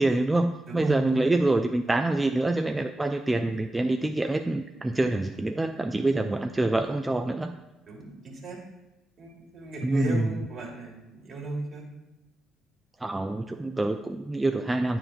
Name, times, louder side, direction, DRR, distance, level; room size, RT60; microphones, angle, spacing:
voice 1, 0.0-7.5 9.8-10.4 13.0-15.0, right 2 dB, 15° right, 6 dB, 0.4 m, -26 dB
voice 2, 0.7-1.2 4.9-5.0 7.9-8.6 9.2-11.8, right 2 dB, 50° right, -1 dB, 2.0 m, -36 dB
9.7 x 4.5 x 2.5 m, 1.0 s
hypercardioid pair, 55°, 0 cm